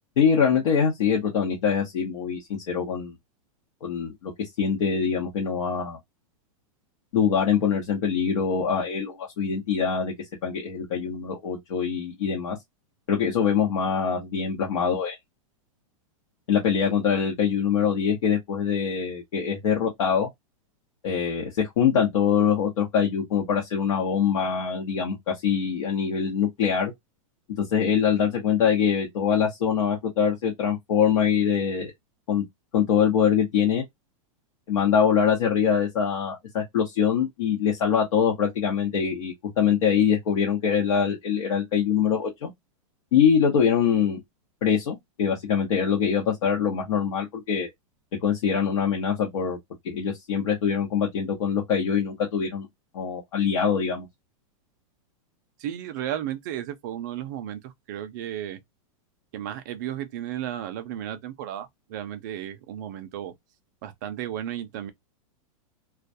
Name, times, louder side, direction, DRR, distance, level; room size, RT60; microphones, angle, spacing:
voice 1, 0.2-3.2 3.8-6.0 7.1-10.1 10.4-12.6 13.1-15.2 16.5-20.3 21.0-26.9 27.6-31.9 32.3-32.4 32.7-33.8 34.7-42.5 43.1-44.2 44.6-47.7 48.2-49.6 49.8-52.7 52.9-54.1, left 7 dB, 65° left, 0.9 m, -24 dB
voice 2, 55.6-58.6 59.3-63.3 63.8-64.9, right 11 dB, 35° right, 0.3 m, -34 dB
2.2 x 2.2 x 2.6 m
supercardioid pair, 170°, 18 cm